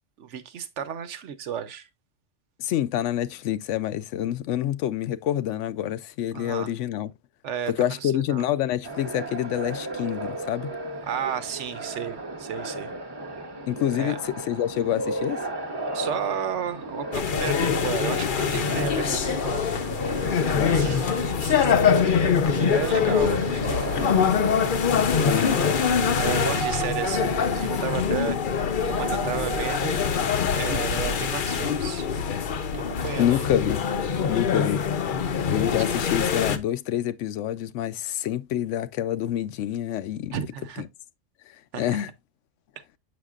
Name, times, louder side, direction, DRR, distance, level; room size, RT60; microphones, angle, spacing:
voice 1, 0.2-1.9 6.3-6.7 7.4-7.7 8.0-8.4 11.1-12.9 14.0-14.2 15.9-19.7 20.7-21.1 21.4-24.6 26.2-28.4 28.9-30.0 30.5-32.1 32.7-33.5 40.3-40.8 41.7-42.0, right 8 dB, 80° right, 1.1 m, -33 dB
voice 2, 2.6-7.1 7.7-10.8 13.7-15.5 20.5-21.0 25.2-25.6 33.2-33.9 34.2-34.8 35.5-40.4 41.7-42.1, left 11 dB, 80° left, 0.9 m, -27 dB
sound 1, 8.8-26.3, right 1 dB, 20° right, 0.9 m, -34 dB
sound 2, 17.1-36.6, left 7 dB, 50° left, 0.7 m, -24 dB
sound 3, 25.4-30.6 31.0-31.5, right 8 dB, 55° right, 0.8 m, -36 dB
7.8 x 6.1 x 2.4 m
omnidirectional pair, 1.2 m